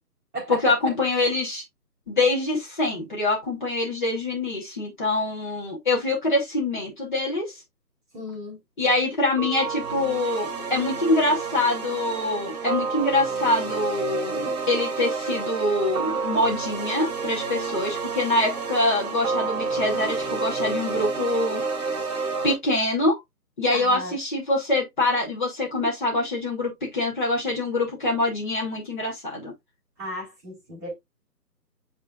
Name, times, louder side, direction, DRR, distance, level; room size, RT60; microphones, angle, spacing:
voice 1, 0.5-1.6 2.1-7.6 8.8-21.6 22.4-23.2 23.6-29.5, left 2 dB, 30° left, 2.7 m, -25 dB
voice 2, 8.1-8.6 23.7-24.1 30.0-30.9, equal, 5° right, 3.4 m, -34 dB
sound 1, 9.4-22.5, right 4 dB, 25° right, 2.8 m, -29 dB
9.5 x 4.5 x 2.5 m
figure-of-eight pair, 160°, 49 cm